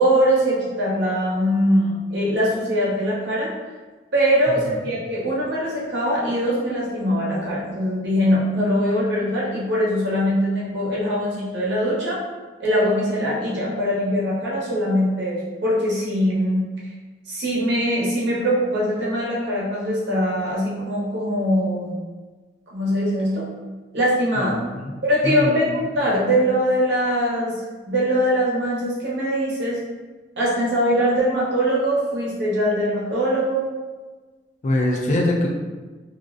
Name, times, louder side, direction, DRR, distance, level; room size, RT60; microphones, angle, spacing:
voice 1, 0.0-3.5 4.1-12.2 12.6-16.7 17.3-22.0 22.7-23.5 23.9-24.5 25.0-27.6 27.9-29.8 30.4-33.6, equal, 75° right, -6 dB, 0.8 m, -22 dB
voice 2, 24.4-24.9 25.2-25.6 34.6-35.5, left 1 dB, 40° left, -1 dB, 0.3 m, -23 dB
2.4 x 2.0 x 2.5 m, 1.3 s
head